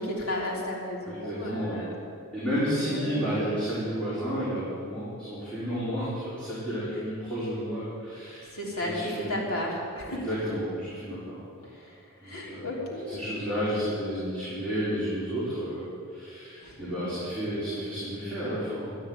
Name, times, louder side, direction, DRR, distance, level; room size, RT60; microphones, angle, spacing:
voice 1, 0.0-2.0 2.7-3.5 8.4-10.2 11.6-13.2 16.6-17.1, left 1 dB, 80° left, -3 dB, 3.3 m, -34 dB
voice 2, 1.1-1.8 2.3-8.5 8.8-9.4 10.1-11.4 12.2-12.7 13.1-19.0, equal, 5° left, -13 dB, 4.6 m, -31 dB
13.5 x 9.6 x 9.5 m, 2.5 s
head